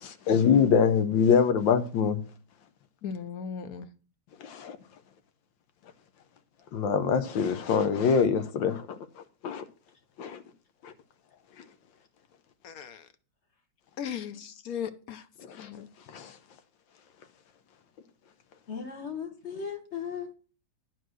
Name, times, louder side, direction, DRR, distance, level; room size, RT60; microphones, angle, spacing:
voice 1, 0.0-2.2 4.4-4.8 6.7-8.8 9.4-9.6 10.2-10.4 10.8-10.9 15.5-15.7 16.1-16.3, left 6 dB, 80° left, 1.6 m, -24 dB
voice 2, 3.0-3.9 12.6-13.1 14.0-15.3 15.6-15.9, left 7 dB, 60° left, 1.1 m, -37 dB
voice 3, 18.7-20.3, left 7 dB, 40° left, 1.5 m, -37 dB
11.0 x 4.6 x 6.2 m
omnidirectional pair, 2.1 m